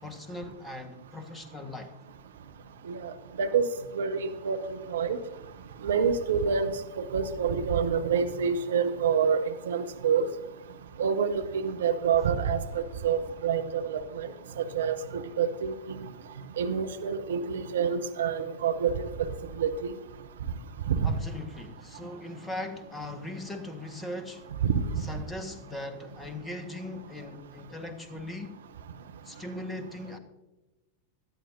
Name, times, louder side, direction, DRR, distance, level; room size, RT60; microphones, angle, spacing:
voice 1, 0.0-1.9 21.0-24.4 25.0-28.5 29.2-30.2, left 1 dB, 10° left, 7 dB, 1.5 m, -39 dB
voice 2, 3.4-3.7 3.9-5.2 5.8-10.3 11.0-14.3 14.6-16.1 16.6-19.3 19.6-19.9 20.9-21.1 24.6-25.0, right 6 dB, 60° right, 8 dB, 0.8 m, -27 dB
18.5 x 13.0 x 2.7 m, 1.1 s
figure-of-eight pair, 90°, 0 cm